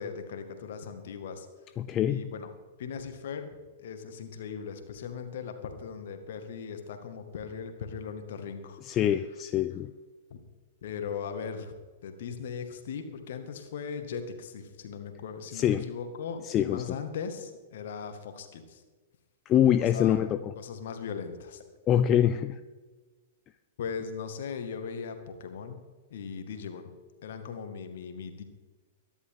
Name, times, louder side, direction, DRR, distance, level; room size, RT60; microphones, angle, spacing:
voice 1, 0.0-1.5 2.0-2.5 2.8-9.1 10.3-10.4 10.8-11.7 12.0-18.8 19.5-21.6 23.8-25.8 26.1-26.9 27.2-28.4, left 6 dB, 55° left, 7 dB, 2.0 m, -39 dB
voice 2, 1.8-2.3 8.8-9.9 15.5-15.9 16.4-17.0 19.5-20.5 21.9-22.6, left 10 dB, 25° left, 12 dB, 0.5 m, -25 dB
23.0 x 11.5 x 3.8 m, 1.3 s
figure-of-eight pair, 100°, 0 cm